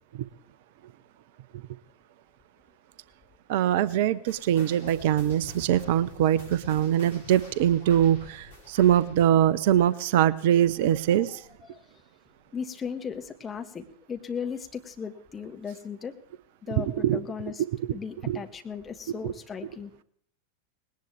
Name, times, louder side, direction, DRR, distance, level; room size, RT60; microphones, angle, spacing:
voice 1, 3.5-11.4 17.0-17.2 18.3-18.4 19.2-19.3, right 11 dB, 50° right, 20 dB, 0.6 m, -23 dB
sound 1, 4.3-11.1 11.4-11.7 12.3-12.4 13.2-13.3, left 1 dB, 80° left, 6.4 m, -47 dB
voice 2, 12.5-16.1 16.6-17.6 17.9-19.9, left 6 dB, 20° left, 5 dB, 1.6 m, -36 dB
19.5 x 18.0 x 3.5 m, 0.64 s
figure-of-eight pair, 90°, 0 cm